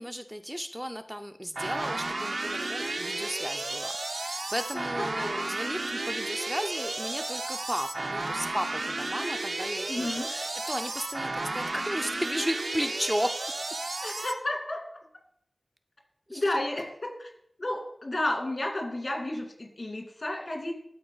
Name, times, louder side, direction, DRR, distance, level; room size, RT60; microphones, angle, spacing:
voice 1, 0.0-13.4 16.3-16.4, equal, 5° right, 7 dB, 0.5 m, -34 dB
sound 1, 1.6-14.3, right 2 dB, 70° right, 0.6 m, -33 dB
voice 2, 9.9-10.3 14.0-14.8 16.3-17.3 17.6-20.7, left 1 dB, 65° left, 1 dB, 2.4 m, -32 dB
12.5 x 4.3 x 3.9 m, 0.71 s
wide cardioid pair, 45°, 0 cm